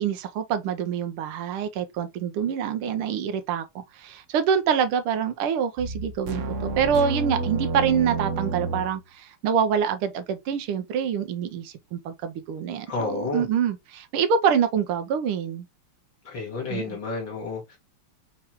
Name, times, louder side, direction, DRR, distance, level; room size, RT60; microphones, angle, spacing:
voice 1, 0.0-15.6 16.7-17.0, right 7 dB, 80° right, 1.5 m, -26 dB
sound 1, 5.8-9.0, right 3 dB, 65° right, 0.8 m, -29 dB
voice 2, 12.9-13.4 16.2-17.8, left 3 dB, 60° left, 2.7 m, -31 dB
5.8 x 3.0 x 2.9 m
omnidirectional pair, 2.4 m